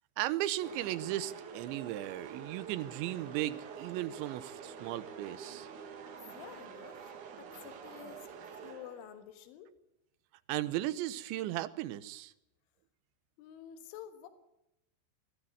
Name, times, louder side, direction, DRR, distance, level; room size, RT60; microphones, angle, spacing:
voice 1, 0.2-5.7 10.5-12.3, right 14 dB, 80° right, 15 dB, 3.1 m, -36 dB
sound 1, 0.6-9.3, right 6 dB, 55° right, 2.4 m, -47 dB
voice 2, 6.3-7.0 7.3-8.3 8.5-9.8 13.4-14.3, left 10 dB, 80° left, 8 dB, 3.9 m, -50 dB
21.5 x 15.5 x 8.7 m, 0.88 s
omnidirectional pair, 5.5 m